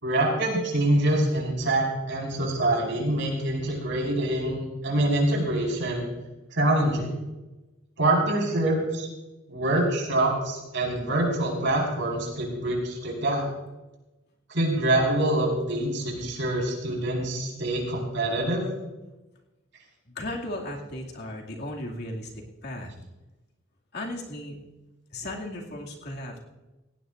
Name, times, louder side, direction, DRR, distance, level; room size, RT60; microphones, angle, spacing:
voice 1, 0.0-6.1 6.5-7.1 8.0-9.1 9.5-13.4 14.5-18.7, right 1 dB, 65° right, -1 dB, 5.1 m, -25 dB
voice 2, 20.1-22.9 23.9-24.6 25.1-26.4, left 1 dB, 55° left, -1 dB, 2.5 m, -36 dB
18.0 x 16.5 x 2.6 m, 1.1 s
head